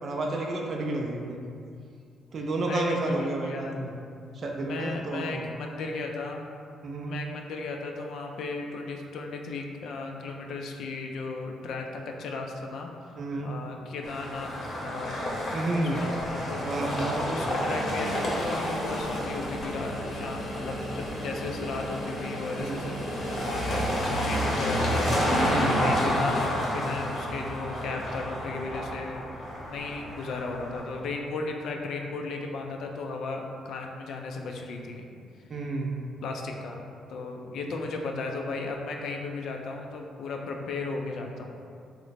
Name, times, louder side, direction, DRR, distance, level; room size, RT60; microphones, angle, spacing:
voice 1, 0.0-1.4 2.3-3.9 4.3-5.5 6.8-7.2 13.2-13.5 15.5-16.0 16.6-17.5 22.5-22.8 25.4-25.8 35.5-36.1, right 2 dB, 50° right, 0 dB, 0.3 m, -31 dB
voice 2, 2.7-3.8 4.7-6.4 7.0-14.5 14.8-15.1 15.5-16.6 17.2-29.2 29.6-35.1 36.2-41.6, left 3 dB, 70° left, 2 dB, 0.4 m, -35 dB
sound 1, 14.0-31.0, equal, 55° left, 0.7 m, -30 dB
3.0 x 2.0 x 4.0 m, 2.4 s
cardioid pair, 90°, 0 cm